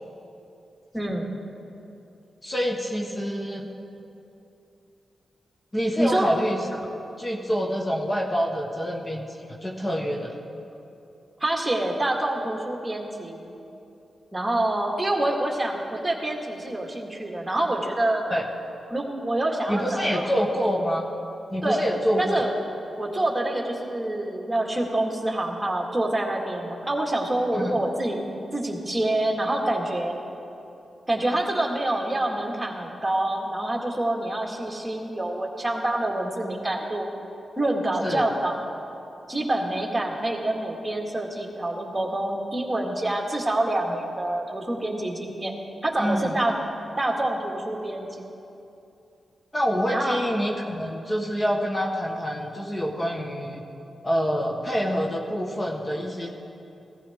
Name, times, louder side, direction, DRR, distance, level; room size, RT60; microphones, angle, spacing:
voice 1, 0.9-1.3 6.0-6.3 11.4-13.6 14.3-18.2 18.9-20.3 21.6-21.8 22.2-22.5 23.0-28.2 28.5-30.2 31.1-37.1 37.6-38.6 39.3-45.5 45.8-46.5 47.0-48.2 49.9-50.2, right 1 dB, 15° right, 0 dB, 2.0 m, -26 dB
voice 2, 2.4-3.7 5.7-6.8 7.2-10.3 18.3-18.4 19.7-21.1 21.5-22.3 27.5-27.7 38.0-38.3 46.0-46.4 49.5-53.7 54.0-56.3, equal, 25° left, 0 dB, 1.4 m, -26 dB
16.0 x 14.0 x 3.7 m, 2.8 s
cardioid pair, 80°, 0 cm